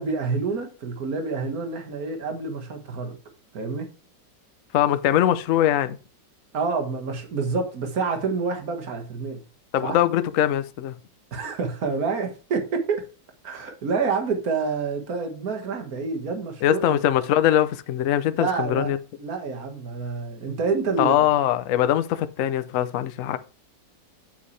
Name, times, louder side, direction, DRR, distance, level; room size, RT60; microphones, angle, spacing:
voice 1, 0.0-3.2 3.5-3.9 6.5-9.4 9.8-10.0 11.3-13.0 13.4-17.0 18.4-18.9 19.2-21.2, right 4 dB, 50° right, 2.0 m, -28 dB
voice 2, 4.7-6.0 9.7-11.0 16.6-19.0 21.0-23.4, left 11 dB, 65° left, 0.8 m, -22 dB
8.4 x 7.4 x 3.3 m
omnidirectional pair, 2.1 m